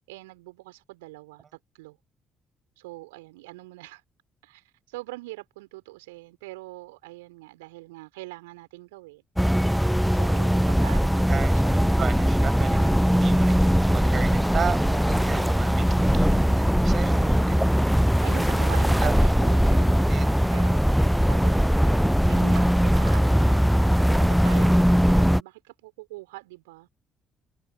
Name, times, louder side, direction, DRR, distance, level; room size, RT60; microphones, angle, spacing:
voice 1, 0.0-1.4 1.8-2.0 2.8-4.0 4.4-9.2 10.1-11.8 12.6-13.0 18.0-26.9, right 21 dB, 75° right, 5.2 m, -43 dB
sound 1, 9.4-25.4, equal, ahead, 0.6 m, -20 dB
voice 2, 11.3-17.9 18.8-19.2 20.1-20.4, right 7 dB, 45° right, 6.2 m, -34 dB
figure-of-eight pair, 45°, 0 cm